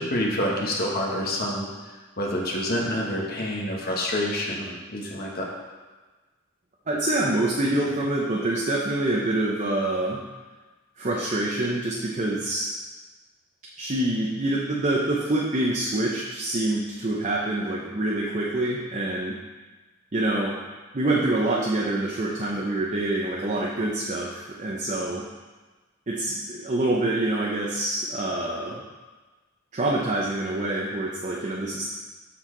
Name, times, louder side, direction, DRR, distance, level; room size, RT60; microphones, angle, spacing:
voice 1, 0.0-1.7 2.2-5.5, left 1 dB, 50° left, -2 dB, 1.3 m, -27 dB
voice 2, 6.9-10.2 11.0-12.7 13.8-19.4 20.1-20.7 20.9-25.3 26.1-28.8 29.7-31.8, right 2 dB, 35° right, -3 dB, 0.8 m, -26 dB
7.4 x 6.4 x 3.9 m, 1.3 s
head